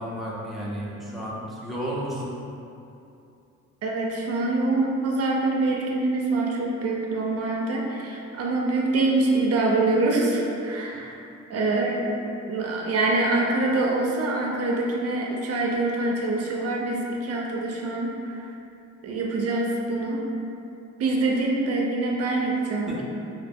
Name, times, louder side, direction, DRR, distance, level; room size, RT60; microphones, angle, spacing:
voice 1, 0.0-2.4 22.9-23.0, equal, ahead, -6 dB, 0.5 m, -32 dB
voice 2, 3.8-11.1 11.5-12.1 12.5-18.3 19.0-20.2 21.0-23.0, right 2 dB, 55° right, -2 dB, 0.4 m, -25 dB
2.5 x 2.0 x 3.4 m, 2.7 s
cardioid pair, 90°, 30 cm